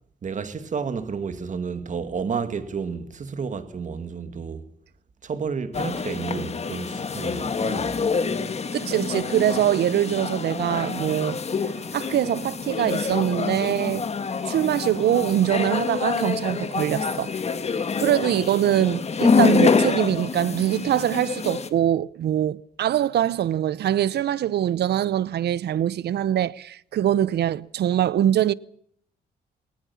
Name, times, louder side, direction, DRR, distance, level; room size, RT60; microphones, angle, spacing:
voice 1, 0.2-4.6 5.2-7.9, right 5 dB, 45° right, 2.2 m, -31 dB
sound 1, 5.7-21.7, left 5 dB, 40° left, 1.8 m, -26 dB
voice 2, 8.7-11.4 11.9-14.0 14.5-17.3 18.0-28.5, right 11 dB, 75° right, 0.8 m, -23 dB
21.0 x 19.0 x 7.1 m
cardioid pair, 110°, 17 cm